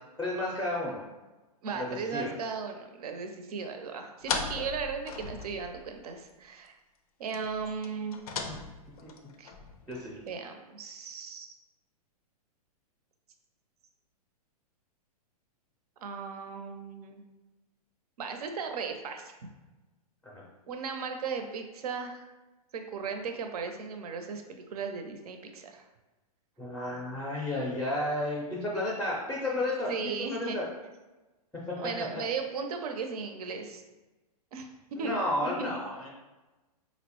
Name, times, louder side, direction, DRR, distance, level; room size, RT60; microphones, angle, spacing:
voice 1, 0.2-1.0 1.7-2.3 4.6-4.7 9.0-9.1 9.9-10.2 20.2-20.4 26.6-29.9 30.3-30.7 35.0-36.1, left 1 dB, 5° left, -4 dB, 0.4 m, -32 dB
voice 2, 1.6-6.7 7.2-8.2 9.4-9.5 10.3-11.5 16.0-17.3 18.2-19.3 20.7-22.3 22.7-25.9 29.9-30.7 31.8-33.8 34.5-34.7 35.0-35.2 35.4-35.7, right 5 dB, 70° right, 6 dB, 0.5 m, -36 dB
sound 1, 4.2-6.0 6.3-6.4 6.7-6.8 7.3-10.3, left 5 dB, 70° left, 0.5 m, -38 dB
4.0 x 2.0 x 2.9 m, 1.1 s
hypercardioid pair, 125°, 20 cm